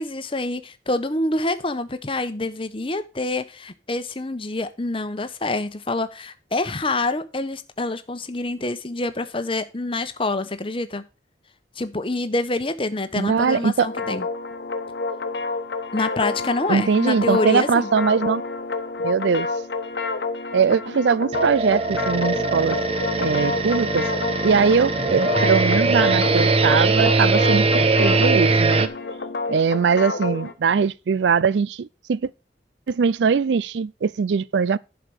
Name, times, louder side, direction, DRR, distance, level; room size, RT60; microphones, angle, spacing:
voice 1, 0.0-11.0 11.8-14.3 15.9-17.9, left 2 dB, 30° left, 1.0 m, -26 dB
voice 2, 13.2-13.9 16.7-18.4 19.0-19.5 20.5-22.8 23.1-24.1 24.4-28.9 29.5-32.3 32.9-34.8, right 6 dB, 80° right, 0.4 m, -21 dB
sound 1, 13.8-30.5, left 3 dB, 75° left, 1.1 m, -29 dB
sound 2, 21.3-28.9, right 3 dB, 35° right, 0.8 m, -21 dB
11.0 x 4.8 x 6.3 m
head